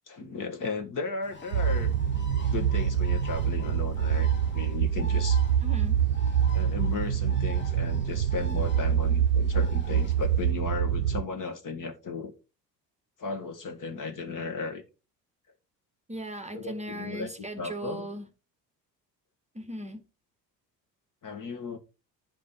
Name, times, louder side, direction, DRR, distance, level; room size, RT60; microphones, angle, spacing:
voice 1, 0.1-1.9 2.5-5.4 6.5-12.3 13.2-14.8 16.5-17.3 17.6-18.1 21.2-21.8, left 4 dB, 40° left, 1.7 m, -35 dB
Bird, 1.2-10.5, left 3 dB, 20° left, 1.3 m, -47 dB
sound 1, 1.5-11.2, right 8 dB, 85° right, 0.6 m, -25 dB
voice 2, 5.6-6.0 16.1-18.3 19.5-20.0, right 1 dB, 15° right, 1.0 m, -38 dB
10.5 x 5.2 x 4.1 m
figure-of-eight pair, 55°, 50 cm